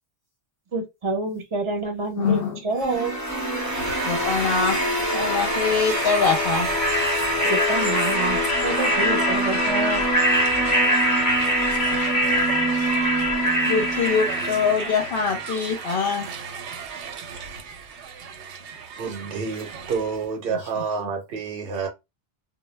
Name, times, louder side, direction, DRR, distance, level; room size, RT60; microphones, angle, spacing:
voice 1, 0.7-2.4 2.6-3.2 7.4-10.1, right 2 dB, 30° right, 0.7 m, -27 dB
voice 2, 2.1-2.6 4.0-4.8 5.1-6.7 7.3-7.5 11.9-12.5 12.7-12.9 13.6-16.3 20.5-20.8, left 5 dB, 65° left, 0.7 m, -24 dB
sound 1, 2.8-15.7, equal, 20° left, 0.6 m, -23 dB
Crowd, 3.6-20.3, right 6 dB, 90° right, 0.9 m, -35 dB
voice 3, 19.0-21.9, right 5 dB, 65° right, 0.8 m, -29 dB
2.2 x 2.0 x 3.1 m
omnidirectional pair, 1.1 m